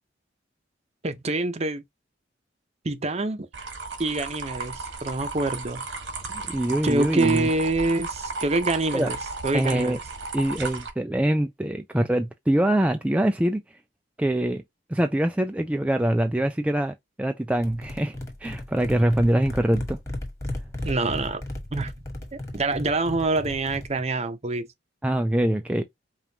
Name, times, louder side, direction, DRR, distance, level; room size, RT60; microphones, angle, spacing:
voice 1, 1.0-1.8 2.8-3.5 4.0-5.8 6.8-9.2 9.4-10.0 20.8-21.4 21.7-21.9 22.3-24.7, right 2 dB, 35° right, 0.7 m, -26 dB
sound 1, 3.5-10.9, right 3 dB, 85° right, 1.4 m, -34 dB
voice 2, 6.5-7.5 8.9-9.1 9.5-10.0 10.3-13.6 14.2-14.6 14.9-18.1 18.4-20.0 25.0-25.8, right 1 dB, 5° right, 0.3 m, -24 dB
sound 2, 17.6-24.0, left 1 dB, 15° left, 1.5 m, -35 dB
5.1 x 2.5 x 2.8 m
head